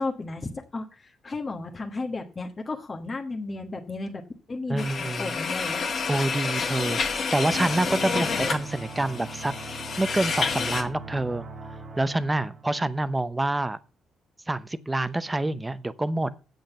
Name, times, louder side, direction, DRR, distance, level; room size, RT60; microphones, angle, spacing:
voice 1, 0.0-4.2 4.5-4.9 5.2-5.8 7.9-8.3, left 3 dB, 30° left, 1.3 m, -33 dB
voice 2, 4.7-5.3 6.1-9.5 10.0-11.5 12.0-13.8 14.5-16.3, right 2 dB, 15° right, 0.7 m, -27 dB
sound 1, 4.8-10.8, left 5 dB, 50° left, 1.8 m, -29 dB
sound 2, 7.5-12.9, right 3 dB, 40° right, 1.6 m, -41 dB
8.0 x 6.5 x 6.7 m
cardioid pair, 90°, 0 cm